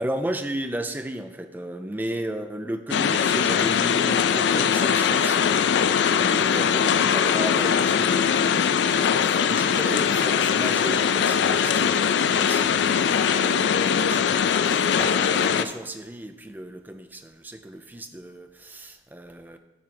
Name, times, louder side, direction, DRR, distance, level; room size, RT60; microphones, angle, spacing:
voice 1, 0.0-5.8 6.1-14.6 15.0-19.6, right 1 dB, 10° right, 7 dB, 0.5 m, -34 dB
sound 1, 2.9-15.7, left 7 dB, 75° left, 0.3 m, -21 dB
9.3 x 3.7 x 5.8 m, 1.0 s
head